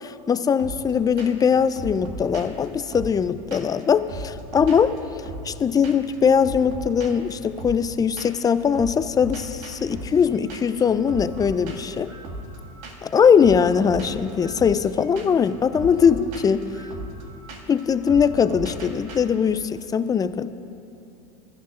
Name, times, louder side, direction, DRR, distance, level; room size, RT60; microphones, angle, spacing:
voice 1, 0.0-4.9 5.4-12.1 13.0-16.7 17.7-20.5, left 7 dB, 20° left, 13 dB, 0.5 m, -21 dB
sound 1, 0.6-0.9 1.2-1.5 1.8-3.8 4.1-5.6 5.8-6.2 6.4-8.5 8.7-19.2, right 1 dB, 65° right, 2.0 m, -37 dB
22.5 x 13.5 x 2.5 m, 2.9 s
hypercardioid pair, 95°, 19 cm